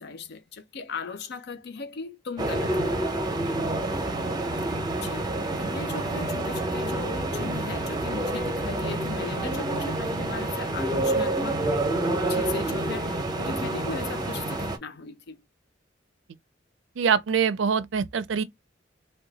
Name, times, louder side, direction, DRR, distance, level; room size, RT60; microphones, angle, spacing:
voice 1, 0.0-3.0 5.0-11.8 12.3-15.4, left 4 dB, 60° left, 0.6 m, -38 dB
sound 1, 2.4-14.8, right 1 dB, 20° right, 0.6 m, -28 dB
voice 2, 17.0-18.4, right 7 dB, 85° right, 0.4 m, -24 dB
2.7 x 2.2 x 3.9 m
head